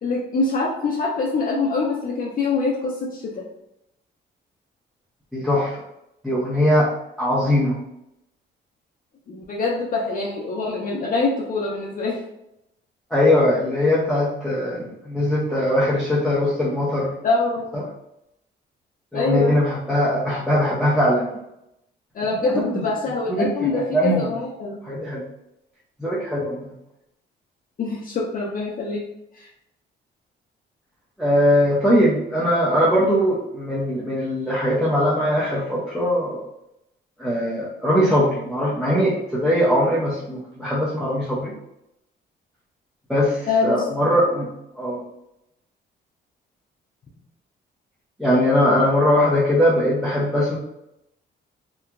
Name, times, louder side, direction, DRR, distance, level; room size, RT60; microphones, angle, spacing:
voice 1, 0.0-3.3 9.3-12.2 17.2-17.6 19.1-19.6 22.1-24.8 27.8-29.0 29.3-29.5 43.5-43.8, left 3 dB, 45° left, -3 dB, 0.6 m, -24 dB
voice 2, 5.3-5.8 6.2-6.9 7.2-7.8 13.1-17.1 17.7-17.8 19.1-21.4 22.4-22.8 23.6-24.3 24.8-25.2 26.0-26.7 31.2-36.4 37.2-41.5 43.1-44.5 44.7-45.0 48.2-50.6, left 1 dB, ahead, -8 dB, 0.7 m, -20 dB
2.9 x 2.3 x 2.3 m, 0.83 s
cardioid pair, 90°, 20 cm